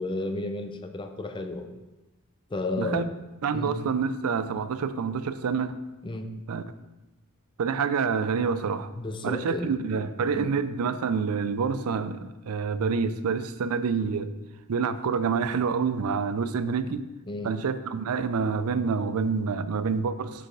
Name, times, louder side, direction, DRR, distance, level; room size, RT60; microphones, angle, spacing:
voice 1, 0.0-1.7 2.5-3.0 3.5-3.7 6.0-6.3 8.9-9.7 10.3-10.5 17.3-17.5, left 2 dB, 20° left, 7 dB, 0.5 m, -32 dB
voice 2, 2.8-3.1 3.4-5.8 6.5-6.6 7.6-8.9 9.2-14.3 14.7-17.1 17.4-20.5, right 5 dB, 85° right, 12 dB, 0.4 m, -27 dB
6.7 x 4.9 x 3.8 m, 1.1 s
head